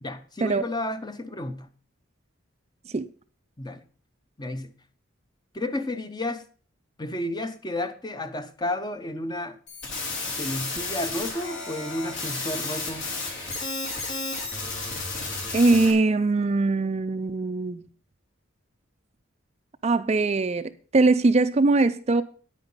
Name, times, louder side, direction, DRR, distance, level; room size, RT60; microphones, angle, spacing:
voice 1, 0.0-1.7 3.6-3.8 4.4-4.7 5.5-6.5 7.0-9.6 10.4-13.1, left 1 dB, 20° left, 0.8 m, -32 dB
sound 1, 9.7-15.9, left 3 dB, 60° left, 3.7 m, -32 dB
voice 2, 15.5-17.8 19.8-22.2, right 3 dB, 30° right, 0.5 m, -21 dB
9.7 x 8.9 x 5.4 m
head